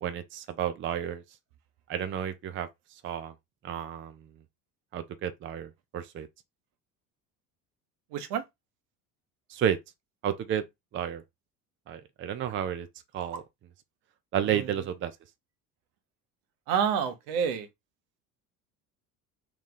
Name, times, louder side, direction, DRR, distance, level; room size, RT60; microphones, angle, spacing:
voice 1, 0.0-1.2 1.9-2.7 3.0-3.3 3.6-4.2 4.9-6.3 9.5-9.8 10.2-10.6 10.9-11.2 11.9-12.9 13.1-13.4 14.3-15.1, right 9 dB, 25° right, 0.5 m, -31 dB
voice 2, 8.1-8.4 13.3-13.4 14.5-14.7 16.7-17.7, right 7 dB, 65° right, 0.8 m, -28 dB
3.0 x 2.4 x 3.7 m
hypercardioid pair, 65°, 48 cm